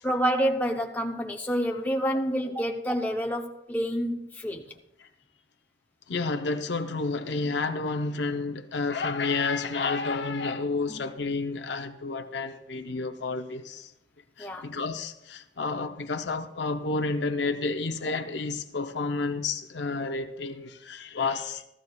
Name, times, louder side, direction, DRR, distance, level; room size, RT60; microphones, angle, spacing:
voice 1, 0.0-4.6 10.9-11.0 14.4-14.7, equal, 10° left, 0.6 m, -28 dB
voice 2, 6.1-13.9 14.4-21.7, left 3 dB, 70° left, 0.6 m, -30 dB
16.5 x 13.5 x 2.3 m
head